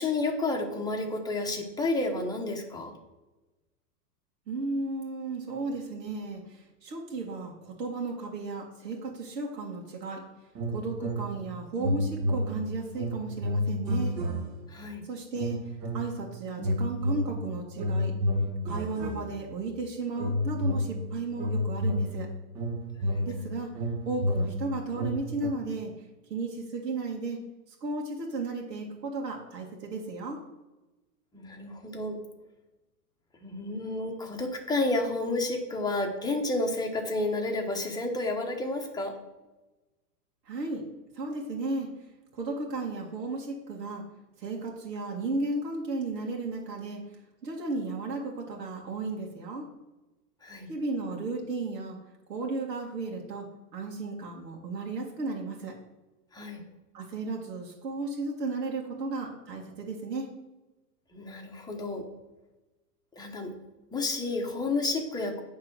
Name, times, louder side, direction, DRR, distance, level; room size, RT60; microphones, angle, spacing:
voice 1, 0.0-2.9 14.7-15.0 23.0-23.3 31.3-32.2 33.4-39.1 50.4-50.7 56.3-56.6 61.1-62.0 63.1-63.5 63.9-65.4, left 2 dB, 10° left, 1 dB, 1.2 m, -31 dB
voice 2, 4.5-10.2 10.7-14.2 15.0-18.1 18.6-22.3 23.2-23.7 24.1-26.0 26.3-27.4 27.7-30.4 40.5-40.8 41.1-41.9 42.3-44.0 44.4-47.0 47.4-49.7 50.7-52.0 52.3-53.5 53.7-55.7 56.9-60.3, right 3 dB, 80° right, -1 dB, 1.9 m, -34 dB
sound 1, 10.6-11.5 11.8-14.8 15.4-16.2 16.6-19.7 20.2-25.5, left 1 dB, 35° right, 1.4 m, -31 dB
9.1 x 3.7 x 6.2 m, 1.1 s
hypercardioid pair, 125°, 48 cm